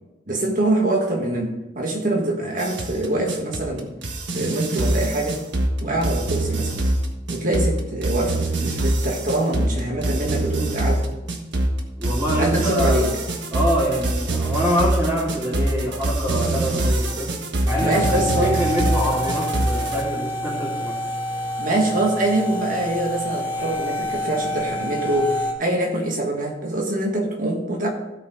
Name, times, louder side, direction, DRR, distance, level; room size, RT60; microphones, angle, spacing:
voice 1, 0.3-3.9 4.3-5.4 5.8-6.8 7.3-11.1 12.3-13.1 17.8-18.6 21.6-27.9, right 1 dB, 50° right, 1 dB, 1.4 m, -24 dB
sound 1, 2.6-20.0, right 1 dB, 80° right, 1.3 m, -24 dB
voice 2, 12.0-13.0 13.5-17.3 17.6-21.0, equal, 15° right, -11 dB, 3.1 m, -25 dB
sound 2, 17.7-25.5, left 1 dB, 10° left, 1.9 m, -27 dB
16.0 x 5.4 x 3.9 m, 1.0 s
head